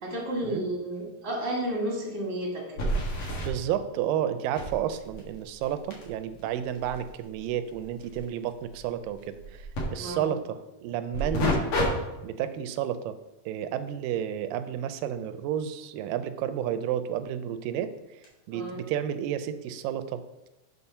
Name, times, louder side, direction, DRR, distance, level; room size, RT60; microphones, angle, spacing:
voice 1, 0.0-2.9 10.0-10.3 18.5-18.9, right 1 dB, 35° right, -3 dB, 1.2 m, -32 dB
sound 1, 0.9-1.0 1.4-1.5 2.8-3.5 4.5-9.8 11.1-11.9 12.3-12.6 17.2-17.3 18.2-18.3, equal, 60° left, 3.0 m, -32 dB
voice 2, 3.3-11.7 12.2-13.2 13.5-17.9 18.5-20.2, right 10 dB, 85° right, 11 dB, 2.2 m, -31 dB
8.6 x 4.3 x 5.6 m, 1.0 s
omnidirectional pair, 4.1 m